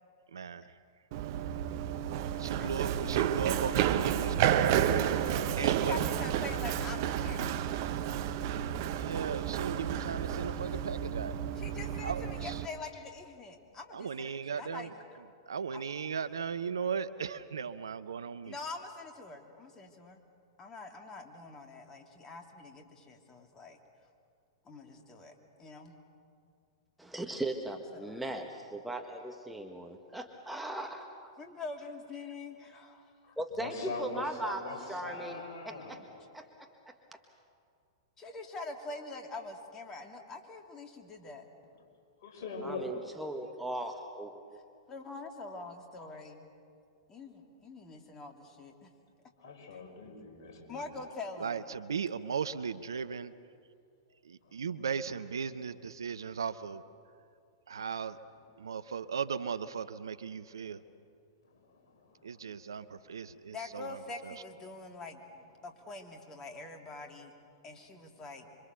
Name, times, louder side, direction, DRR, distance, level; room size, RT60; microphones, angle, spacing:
voice 1, 0.3-0.8 2.4-4.8 5.6-6.0 9.0-11.4 12.0-12.6 13.9-14.9 15.5-18.6 51.4-53.3 54.2-56.8 57.7-58.2 58.6-60.8 62.2-64.3, right 6 dB, 75° right, 14 dB, 0.8 m, -37 dB
Run, 1.1-12.7, right 10 dB, 50° right, 1.1 m, -31 dB
voice 2, 5.6-7.6 11.6-15.2 15.7-15.8 18.4-20.2 20.6-23.8 24.6-25.9 27.7-28.3 31.4-33.1 38.2-41.5 44.9-46.4 47.1-48.9 49.7-49.8 50.7-51.6 63.5-67.3 67.6-68.5, left 3 dB, 25° left, 3 dB, 2.8 m, -45 dB
voice 3, 27.0-31.1 33.4-36.0 36.3-37.2 42.6-44.6, right 1 dB, 5° right, 3 dB, 1.6 m, -39 dB
voice 4, 33.2-36.3 42.2-43.0 49.4-50.9 54.4-54.6 61.4-62.5, left 3 dB, 55° left, 1 dB, 5.7 m, -43 dB
26.5 x 24.5 x 7.0 m, 2.4 s
figure-of-eight pair, 105°, 2 cm